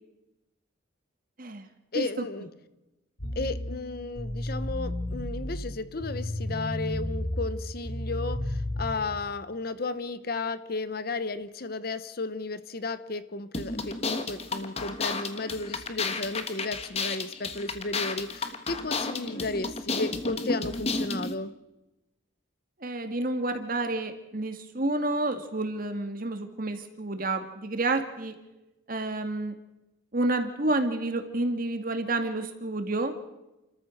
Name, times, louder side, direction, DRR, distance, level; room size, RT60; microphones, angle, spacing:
voice 1, 1.9-2.5 3.4-21.5, left 3 dB, 50° left, 14 dB, 0.9 m, -34 dB
sound 1, 3.2-8.9, left 1 dB, 90° left, 6.4 m, -33 dB
sound 2, 13.5-21.3, left 3 dB, 30° left, 1.4 m, -32 dB
voice 2, 22.8-28.4 28.9-29.5 30.1-33.1, right 2 dB, 45° right, 7 dB, 2.0 m, -29 dB
29.5 x 14.0 x 6.4 m, 0.99 s
head